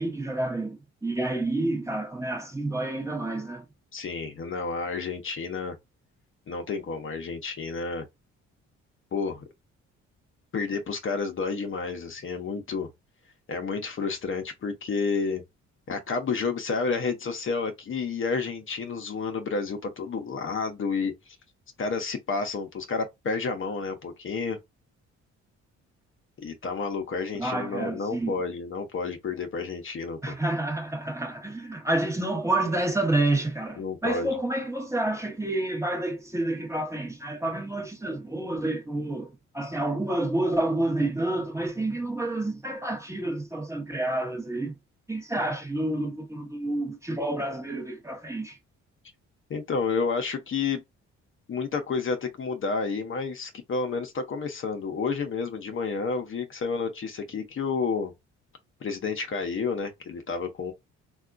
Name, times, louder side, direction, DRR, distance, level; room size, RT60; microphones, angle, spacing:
voice 1, 0.0-3.7 27.4-28.4 30.2-44.7 45.1-48.6, right 2 dB, 10° right, 0.8 m, -29 dB
voice 2, 3.9-5.8 6.5-8.1 9.1-9.4 10.5-12.9 13.5-15.4 15.9-21.4 21.8-24.6 26.4-30.4 33.8-34.3 49.5-50.8 51.5-58.1 58.8-60.7, left 4 dB, 45° left, 0.7 m, -30 dB
3.4 x 2.2 x 2.4 m
cardioid pair, 90°, 30 cm